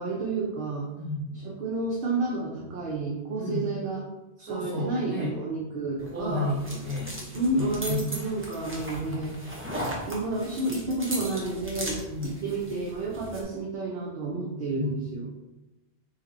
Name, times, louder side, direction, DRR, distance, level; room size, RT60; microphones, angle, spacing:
voice 1, 0.0-0.9 1.4-4.0 4.5-6.6 7.3-9.3 10.1-15.3, right 2 dB, 55° right, -3 dB, 0.7 m, -30 dB
voice 2, 1.0-1.3 3.3-3.7 4.4-5.4 6.1-8.2 9.0-9.3 12.1-12.5 14.7-14.9, left 2 dB, 40° right, -5 dB, 1.5 m, -32 dB
sound 1, 6.0-13.4, right 1 dB, 15° right, 0.7 m, -38 dB
3.2 x 2.8 x 3.8 m, 0.99 s
omnidirectional pair, 1.1 m